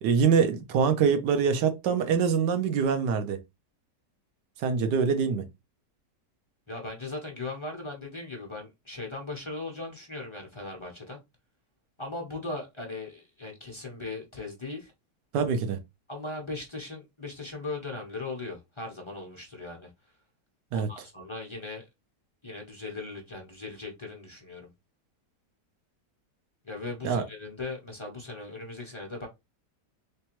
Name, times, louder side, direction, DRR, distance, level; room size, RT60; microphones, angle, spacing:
voice 1, 0.0-3.4 4.6-5.5 15.3-15.8 20.7-20.9 27.0-27.2, right 6 dB, 80° right, 1.4 m, -24 dB
voice 2, 6.7-11.2 12.0-14.9 16.1-19.9 20.7-21.9 22.4-24.7 26.6-29.3, left 3 dB, 40° left, 0.4 m, -38 dB
3.4 x 3.2 x 2.9 m
omnidirectional pair, 1.8 m